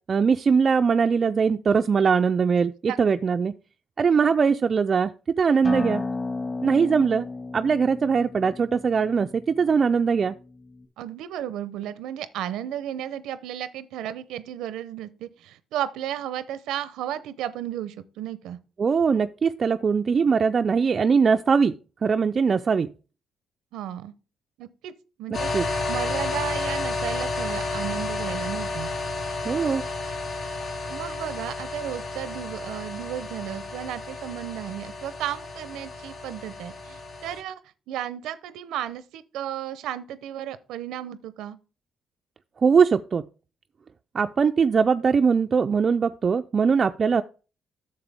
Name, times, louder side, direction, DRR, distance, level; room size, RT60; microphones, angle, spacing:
voice 1, 0.1-3.5 4.0-5.1 5.4-6.0 6.6-7.3 7.5-10.4 18.8-21.7 22.0-22.9 25.5-25.7 29.4-29.8 42.6-43.3 44.1-47.2, right 5 dB, 45° right, 0.3 m, -21 dB
Acoustic guitar, 5.6-10.8, left 3 dB, 25° left, 1.8 m, -34 dB
voice 2, 11.0-18.6 23.7-24.1 24.6-25.5 25.9-28.9 30.9-37.6 37.9-41.6, right 11 dB, 90° right, 0.6 m, -34 dB
sound 1, 25.3-37.4, left 3 dB, 65° left, 1.6 m, -31 dB
9.6 x 6.8 x 3.5 m
cardioid pair, 90°, 0 cm